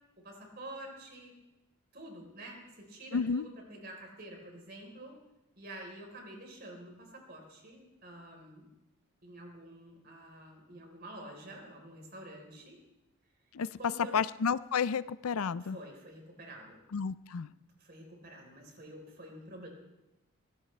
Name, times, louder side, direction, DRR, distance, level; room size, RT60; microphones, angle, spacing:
voice 1, 0.2-1.4 1.9-5.2 5.6-8.7 9.2-12.8 13.8-14.2 15.6-16.8 17.8-19.7, right 1 dB, 45° right, 2 dB, 4.0 m, -48 dB
voice 2, 3.1-3.5 13.5-13.8 14.1-15.8 16.9-17.5, left 6 dB, 85° left, 16 dB, 0.5 m, -31 dB
23.0 x 17.0 x 3.3 m, 0.99 s
head